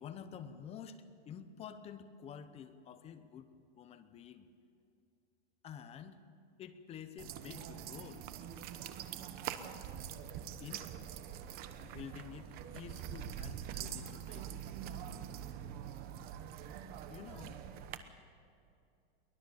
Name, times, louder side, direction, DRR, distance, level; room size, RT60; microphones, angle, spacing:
voice 1, 0.0-3.5 3.8-4.5 5.6-6.2 6.6-8.3 10.6-10.9 11.8-14.6 17.1-17.6, left 8 dB, 20° left, 11 dB, 0.8 m, -49 dB
sound 1, 7.2-18.0, right 9 dB, 30° right, 1.0 m, -44 dB
23.0 x 19.5 x 7.1 m, 2.5 s
supercardioid pair, 160°, 32 cm